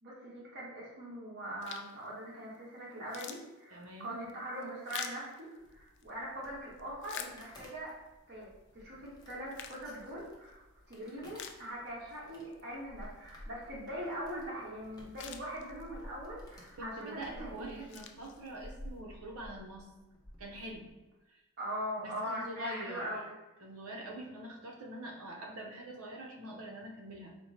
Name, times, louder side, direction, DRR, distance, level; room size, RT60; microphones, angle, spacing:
voice 1, 0.0-7.9 8.3-17.8 21.6-23.4, equal, 50° right, -6 dB, 1.3 m, -42 dB
sound 1, 1.6-2.1 2.5-2.6 2.9-6.1 6.6-7.9 8.4-8.5 9.2-10.6 11.0-11.1 11.3-12.2 12.5-12.6 14.6-14.7 14.9-16.1 16.7-17.0 17.6-18.8, left 8 dB, 55° left, 0.3 m, -47 dB
voice 2, 3.7-4.2 16.8-19.9 20.4-20.9 21.3-21.4 22.0-23.2 23.6-27.4, right 1 dB, 80° right, 1 dB, 0.7 m, -44 dB
sound 2, 5.6-20.9, equal, 20° left, 0.6 m, -54 dB
4.3 x 2.1 x 4.1 m, 1.1 s
head